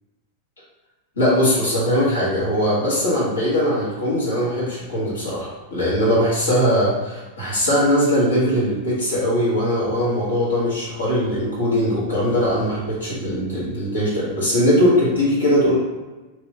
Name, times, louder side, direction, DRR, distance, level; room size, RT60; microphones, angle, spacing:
voice 1, 1.2-15.8, equal, 70° left, -7 dB, 1.2 m, -20 dB
3.1 x 2.7 x 2.8 m, 1.2 s
figure-of-eight pair, 90°, 0 cm